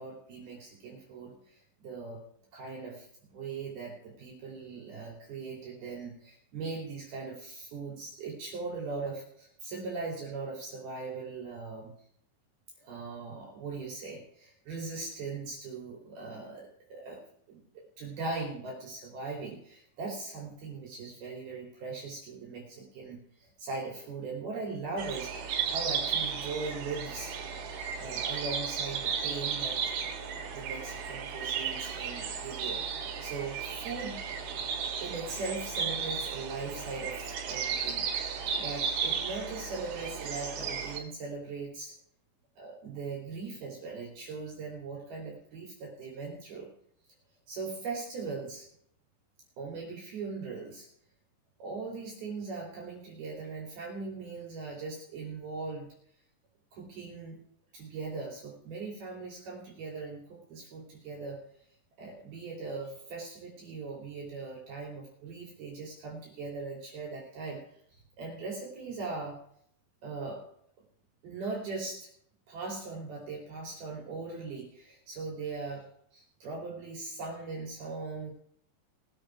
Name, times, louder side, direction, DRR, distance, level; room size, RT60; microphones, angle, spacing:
voice 1, 0.0-2.2 2.5-11.9 12.8-17.2 17.5-17.6 18.0-27.4 28.0-29.8 30.5-34.2 35.0-38.0 38.6-41.9 42.6-46.7 47.5-48.6 49.6-50.9 51.6-55.9 56.7-57.4 57.7-61.4 62.0-67.7 67.9-69.4 70.0-70.4 71.2-72.1 72.5-75.8 76.1-78.3, right 4 dB, 55° right, -2 dB, 4.7 m, -40 dB
sound 1, 25.0-41.0, right 6 dB, 70° right, 4.1 m, -34 dB
20.5 x 7.7 x 4.6 m, 0.65 s
omnidirectional pair, 5.5 m